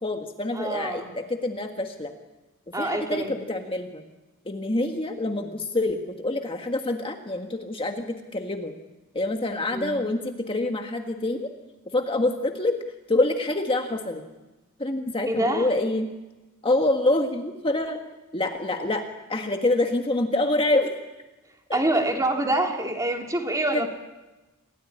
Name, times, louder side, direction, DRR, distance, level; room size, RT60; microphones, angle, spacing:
voice 1, 0.0-2.1 2.8-4.0 4.4-8.7 9.1-11.5 11.9-12.8 13.1-14.2 14.8-16.1 16.6-18.0 18.3-20.9 21.7-21.8 23.7-23.9, left 2 dB, 25° left, 4 dB, 1.6 m, -26 dB
voice 2, 0.5-1.1 2.7-3.3 9.7-10.0 15.3-15.7 21.7-23.9, right 1 dB, 15° right, 2 dB, 3.1 m, -26 dB
28.5 x 17.5 x 10.0 m, 1.1 s
head